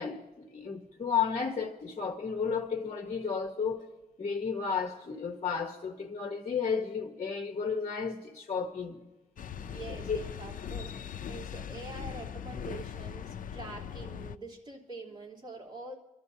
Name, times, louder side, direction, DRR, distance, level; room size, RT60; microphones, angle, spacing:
voice 1, 0.0-3.8 4.2-9.0 9.7-10.2, left 6 dB, 50° left, 1.1 m, -33 dB
sound 1, 9.4-14.4, left 8 dB, 65° left, 0.4 m, -40 dB
voice 2, 9.6-15.9, right 3 dB, 30° right, 3.4 m, -45 dB
28.0 x 12.5 x 2.8 m
wide cardioid pair, 120°, 15 cm